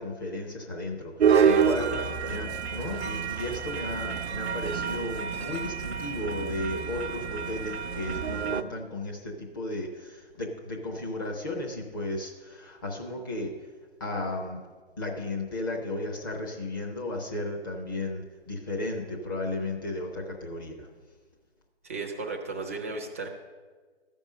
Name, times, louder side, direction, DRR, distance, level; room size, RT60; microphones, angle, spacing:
voice 1, 0.0-2.0 2.3-13.5 14.0-14.6 15.0-20.9, left 2 dB, 20° left, -1 dB, 0.8 m, -34 dB
sound 1, 1.2-8.6, right 7 dB, 70° right, 0.6 m, -28 dB
voice 2, 1.3-2.4 21.8-23.3, right 3 dB, 15° right, 1 dB, 0.5 m, -35 dB
13.5 x 5.4 x 6.4 m, 1.4 s
figure-of-eight pair, 145°, 33 cm